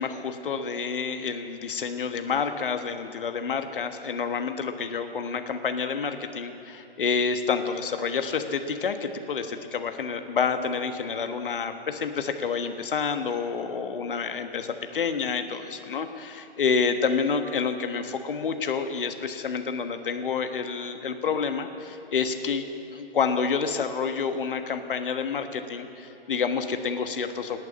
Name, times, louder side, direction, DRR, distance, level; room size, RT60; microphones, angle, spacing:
voice 1, 0.0-22.6 22.9-27.6, left 5 dB, 60° left, 7 dB, 1.4 m, -28 dB
19.5 x 8.6 x 8.5 m, 2.9 s
figure-of-eight pair, 125°, 31 cm